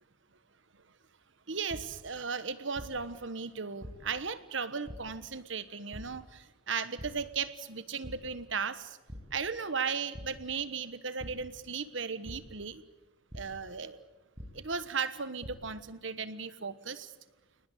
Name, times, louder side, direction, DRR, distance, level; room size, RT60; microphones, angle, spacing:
voice 1, 1.5-9.0 9.3-12.8 13.3-14.1 14.5-17.1, right 5 dB, 70° right, 13 dB, 1.3 m, -36 dB
sound 1, 1.7-1.8 2.7-2.9 3.8-3.9 4.8-4.9 5.9-6.0 7.0-7.1 7.5-7.7 8.0-8.1 9.1-9.2 10.1-10.2 11.2-11.3 12.2-12.3 13.3-13.4 14.4-14.5 15.1-15.5, equal, 30° right, 6.2 m, -43 dB
29.5 x 19.5 x 8.3 m, 1.1 s
head